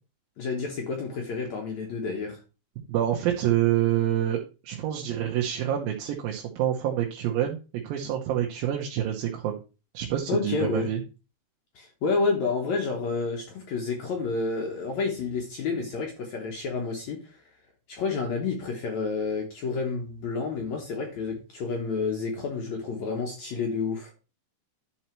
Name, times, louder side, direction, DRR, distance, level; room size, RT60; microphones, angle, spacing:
voice 1, 0.4-2.4 10.3-10.9 11.8-17.4 17.9-24.1, left 4 dB, 60° left, 1 dB, 2.2 m, -29 dB
voice 2, 2.9-7.6 7.8-9.6 9.9-11.0, right 11 dB, 85° right, 0 dB, 2.7 m, -27 dB
11.0 x 4.4 x 4.4 m, 0.32 s
omnidirectional pair, 4.1 m